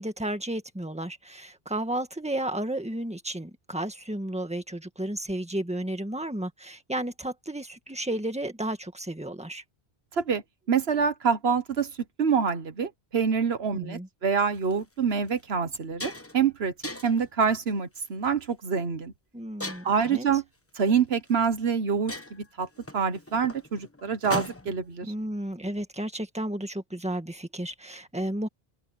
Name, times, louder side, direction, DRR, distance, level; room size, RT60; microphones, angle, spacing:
voice 1, 0.0-9.6 13.7-14.1 19.3-20.3 25.0-28.5, right 1 dB, 5° right, 1.7 m, -33 dB
voice 2, 10.7-11.9 12.2-16.7 17.0-19.1 19.8-20.4 20.8-22.7 22.9-25.1, right 6 dB, 75° right, 1.4 m, -26 dB
sound 1, 14.6-14.7 15.3-15.4 15.7-16.4 16.8-17.3 18.0-18.3 19.6-20.1 21.3-21.4 21.7-21.8 22.1-24.9, left 1 dB, 15° left, 1.1 m, -37 dB
open air
omnidirectional pair, 1.1 m